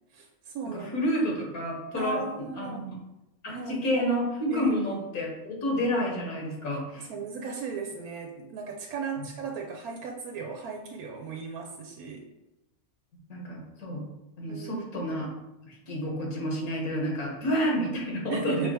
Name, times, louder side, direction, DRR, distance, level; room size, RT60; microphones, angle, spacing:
voice 1, 0.1-1.0 2.0-2.9 3.5-4.1 4.5-4.8 7.0-12.3 14.5-15.0 18.3-18.7, right 5 dB, 85° right, 2 dB, 1.1 m, -36 dB
voice 2, 0.7-2.9 3.4-7.1 9.2-9.3 13.3-14.0 14.4-15.3 15.6-18.7, equal, 80° left, -2 dB, 1.7 m, -29 dB
4.9 x 3.1 x 3.3 m, 0.96 s
omnidirectional pair, 1.5 m